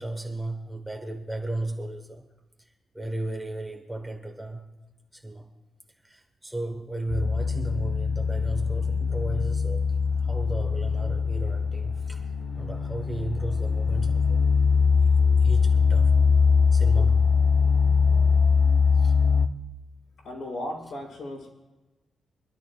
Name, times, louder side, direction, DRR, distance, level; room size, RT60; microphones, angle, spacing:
voice 1, 0.0-2.2 2.6-4.6 5.1-5.5 6.0-14.4 15.0-16.3 16.7-17.3 18.9-19.1, right 2 dB, 5° right, 1.1 m, -35 dB
sound 1, 7.1-19.5, left 5 dB, 35° left, 0.6 m, -22 dB
voice 2, 20.2-21.5, left 1 dB, 80° left, 5.3 m, -36 dB
25.5 x 12.0 x 2.3 m
wide cardioid pair, 150°, 0 cm